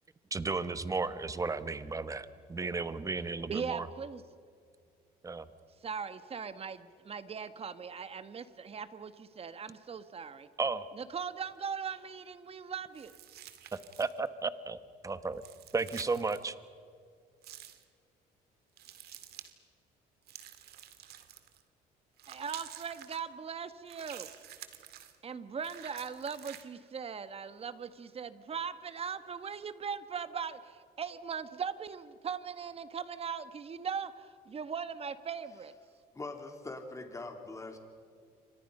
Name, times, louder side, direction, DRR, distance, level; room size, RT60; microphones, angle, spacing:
voice 1, 0.3-3.9 5.2-5.5 10.6-10.9 13.7-14.8 15.0-15.4 15.7-16.5, right 4 dB, 20° right, 13 dB, 1.2 m, -34 dB
voice 2, 3.5-4.2 5.8-10.5 10.9-13.1 22.3-24.3 25.2-35.7, right 6 dB, 35° right, 12 dB, 1.5 m, -39 dB
sound 1, 12.9-14.3 15.3-16.4 17.4-17.8 18.8-19.5 20.3-21.6 22.2-23.2 23.9-25.2 25.6-26.6, right 11 dB, 70° right, 2.2 m, -49 dB
voice 3, 36.1-37.8, left 2 dB, 20° left, 4 dB, 3.8 m, -42 dB
29.0 x 25.5 x 5.6 m, 2.2 s
cardioid pair, 110°, 17 cm